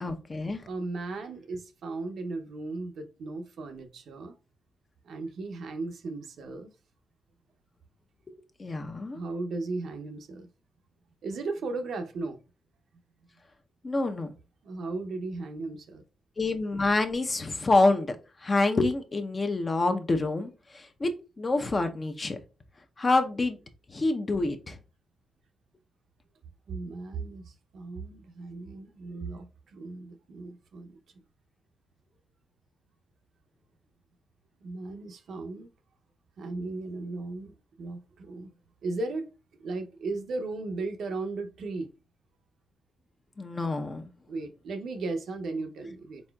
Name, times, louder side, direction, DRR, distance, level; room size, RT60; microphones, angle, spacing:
voice 1, 0.0-0.6 8.6-9.2 13.8-14.3 16.4-18.2 18.4-21.1 21.4-22.4 23.0-23.6 23.9-24.8 43.4-44.1, left 2 dB, 35° left, 0.6 m, -27 dB
voice 2, 0.6-4.4 5.0-6.7 9.1-10.5 11.2-12.4 14.6-16.0 26.7-31.0 34.6-35.7 36.4-37.5 37.8-38.5 38.8-39.3 39.6-41.9 44.3-46.2, right 3 dB, 75° right, 0.6 m, -36 dB
4.0 x 3.7 x 2.3 m
cardioid pair, 75°, 0 cm